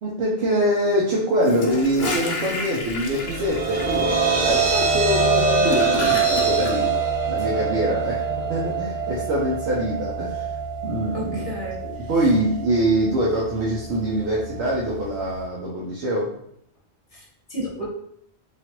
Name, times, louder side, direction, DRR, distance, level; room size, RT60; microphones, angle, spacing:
voice 1, 0.0-4.2 4.4-7.0 7.2-8.2 8.5-10.5 10.8-11.5 11.8-16.3, right 1 dB, 75° right, -5 dB, 0.9 m, -24 dB
Gurgling / Toilet flush, 1.4-6.7, left 2 dB, 65° left, 0.9 m, -29 dB
sound 1, 3.1-15.4, right 4 dB, 50° right, 0.5 m, -25 dB
voice 2, 11.1-12.1 17.1-17.9, equal, 35° left, -6 dB, 1.0 m, -33 dB
3.1 x 2.4 x 2.8 m, 0.70 s
omnidirectional pair, 1.1 m